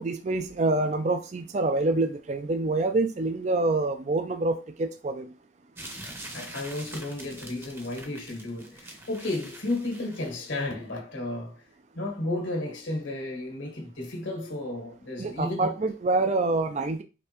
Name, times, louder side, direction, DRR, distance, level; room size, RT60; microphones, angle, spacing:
voice 1, 0.0-5.3 15.2-17.0, right 2 dB, 35° right, 0.4 m, -26 dB
sound 1, 5.8-10.7, right 1 dB, 10° right, 0.7 m, -44 dB
voice 2, 6.3-11.6 11.9-15.8, left 2 dB, 75° left, 1.6 m, -33 dB
5.2 x 3.2 x 3.0 m
head